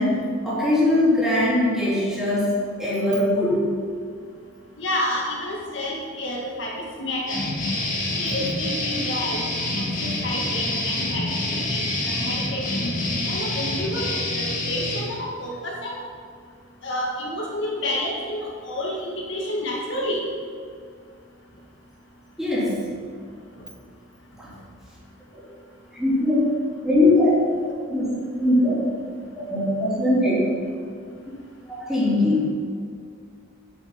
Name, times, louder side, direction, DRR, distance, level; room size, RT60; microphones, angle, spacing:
voice 1, 0.0-3.7 22.4-22.9 24.4-24.6 25.3-25.4 25.9-26.5 26.8-27.3 27.6-28.1 28.4-28.8 29.3-30.4 31.7-32.5, left 1 dB, ahead, -8 dB, 3.4 m, -21 dB
voice 2, 4.8-7.4 8.2-9.5 9.7-12.9 13.3-16.0 16.8-20.2, left 1 dB, 60° left, -2 dB, 2.0 m, -29 dB
sound 1, 7.3-15.0, left 2 dB, 40° left, 2.6 m, -27 dB
10.0 x 8.5 x 5.8 m, 2.2 s
head